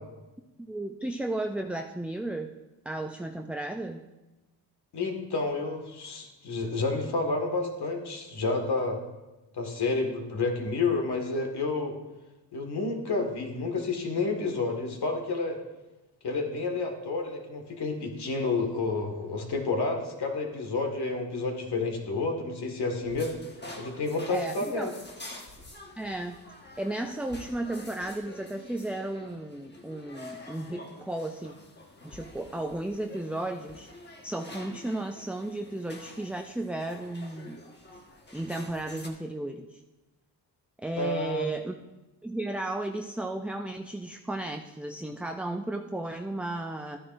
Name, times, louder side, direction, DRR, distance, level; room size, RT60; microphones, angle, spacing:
voice 1, 0.7-2.5 2.9-4.0 24.3-24.9 26.0-26.4 26.8-31.5 32.0-33.9 34.2-37.6 38.3-39.8 40.8-41.8 42.2-47.0, right 1 dB, 5° right, 4 dB, 0.4 m, -34 dB
voice 2, 4.9-9.0 9.5-12.0 12.5-15.6 16.2-23.3 23.8-24.9 41.0-41.4, left 3 dB, 65° left, 3 dB, 1.9 m, -30 dB
sound 1, 23.1-39.1, left 2 dB, 25° left, 1.4 m, -48 dB
12.5 x 9.9 x 2.6 m, 1.1 s
cardioid pair, 95°, 42 cm